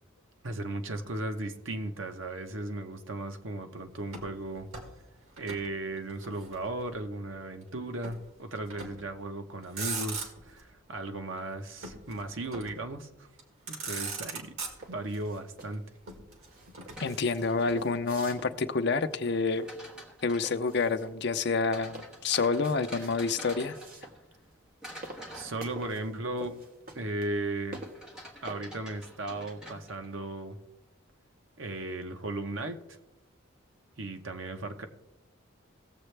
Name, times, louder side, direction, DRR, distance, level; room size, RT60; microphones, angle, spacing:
voice 1, 0.4-4.7 5.4-13.3 13.7-14.6 14.9-15.8 25.3-26.6 26.9-27.8 28.4-30.6 31.6-32.8 34.0-34.9, right 2 dB, 65° right, 1.0 m, -36 dB
Motor vehicle (road), 4.1-5.7 6.0-7.0 8.0-8.3 8.7-9.1 9.6-10.6 11.8-12.9 13.4-13.5 13.7-15.2 16.1-17.7, right 4 dB, 85° right, 2.0 m, -40 dB
sound 1, 14.7-28.5, right 2 dB, 45° right, 1.4 m, -48 dB
sound 2, 16.7-18.3 19.3-20.6 21.7-24.5 24.8-26.2 27.7-30.3, equal, 5° right, 1.4 m, -48 dB
voice 2, 17.0-19.7 20.2-23.8, left 4 dB, 50° left, 0.6 m, -28 dB
18.0 x 7.4 x 3.3 m
head